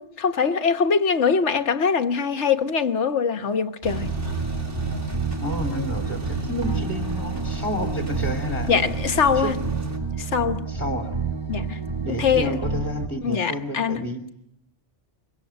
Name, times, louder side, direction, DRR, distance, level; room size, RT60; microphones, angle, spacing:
voice 1, 0.0-4.1 8.7-9.6 10.2-10.7 11.5-11.8 12.2-12.6 13.2-14.1, left 6 dB, 80° left, 1.6 m, -22 dB
sound 1, 3.8-10.0, right 1 dB, 85° right, 3.8 m, -33 dB
sound 2, 3.9-13.1, right 5 dB, 25° right, 1.2 m, -29 dB
voice 2, 5.4-8.7 9.3-9.5 10.7-11.1 12.0-14.2, equal, 10° left, 2.8 m, -30 dB
24.5 x 23.5 x 8.9 m
omnidirectional pair, 1.2 m